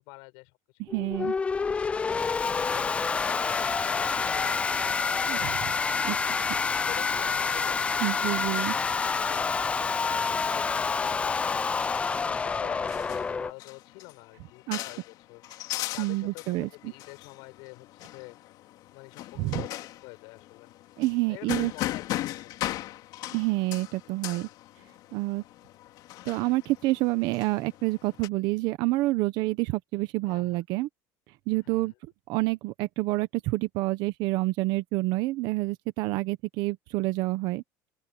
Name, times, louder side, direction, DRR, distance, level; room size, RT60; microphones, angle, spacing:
voice 1, 0.0-1.6 2.0-6.2 6.8-8.7 8.9-9.6 10.0-11.8 12.2-15.4 15.7-18.4 18.9-20.7 21.3-22.7 30.3-30.6 31.6-31.9, left 28 dB, 80° left, 6.3 m, -47 dB
voice 2, 0.8-1.3 5.3-5.5 6.0-6.2 8.0-8.7 14.7-14.8 16.0-16.9 19.4-19.6 21.0-21.7 23.3-24.5 25.1-25.4 26.2-30.9 31.5-31.9 32.3-37.6, right 20 dB, 70° right, 1.0 m, -28 dB
sound 1, 0.9-13.5, left 5 dB, 15° left, 0.3 m, -28 dB
sound 2, 12.3-28.3, left 15 dB, 60° left, 2.8 m, -38 dB
cardioid pair, 150°, 8 cm